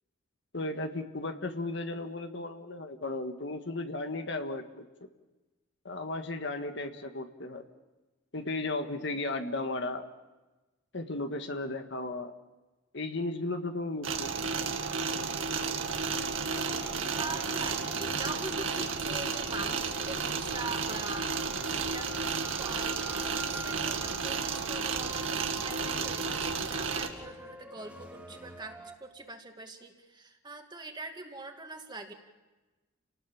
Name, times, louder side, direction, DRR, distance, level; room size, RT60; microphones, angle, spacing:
voice 1, 0.5-5.1 5.8-7.7 8.3-10.0 10.9-12.3 12.9-14.3, left 2 dB, 65° left, 7 dB, 1.6 m, -35 dB
sound 1, 14.0-27.1, right 5 dB, 80° right, 2.2 m, -32 dB
sound 2, 16.5-29.0, equal, 5° right, 2.2 m, -47 dB
voice 2, 17.2-22.1 22.6-32.1, right 3 dB, 20° right, 4 dB, 2.3 m, -43 dB
30.0 x 19.0 x 7.3 m, 1.2 s
head